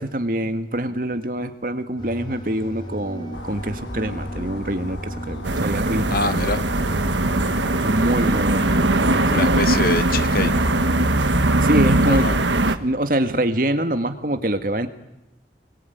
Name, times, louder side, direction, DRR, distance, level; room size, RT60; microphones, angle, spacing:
voice 1, 0.0-6.3 7.8-9.5 11.6-12.3 12.6-14.9, right 1 dB, 50° right, 9 dB, 1.9 m, -25 dB
sound 1, 2.0-11.1, right 1 dB, 25° left, 4.8 m, -36 dB
sound 2, 3.3-12.4, left 1 dB, 85° left, 2.5 m, -34 dB
sound 3, 5.4-12.8, right 2 dB, 90° right, 1.5 m, -20 dB
voice 2, 6.1-6.6 9.3-10.7 12.0-12.4, left 3 dB, 55° left, 13 dB, 1.1 m, -25 dB
26.0 x 22.0 x 9.4 m, 0.90 s
head